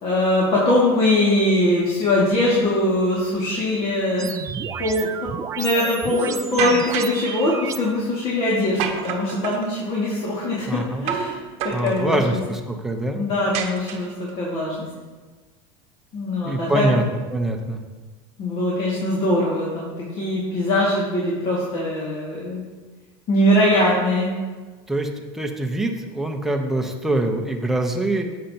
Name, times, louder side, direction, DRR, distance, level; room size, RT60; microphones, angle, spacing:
voice 1, 0.0-4.3 4.8-10.7 11.0-11.4 11.8-12.2 13.1-14.9 16.1-16.9 18.4-19.9 20.2-22.6 23.3-24.4, left 1 dB, 40° left, -6 dB, 2.2 m, -21 dB
sound 1, 4.2-7.8, right 7 dB, 20° right, 0.4 m, -31 dB
sound 2, 6.6-7.2 8.8-9.7 11.1-11.3 11.6-12.3 13.5-14.3, right 8 dB, 50° right, 1.0 m, -28 dB
voice 2, 10.7-11.0 11.7-13.2 16.4-17.0 17.3-17.8 24.9-28.3, right 1 dB, ahead, 2 dB, 0.9 m, -24 dB
11.0 x 7.8 x 2.9 m, 1.3 s
supercardioid pair, 135°, 14 cm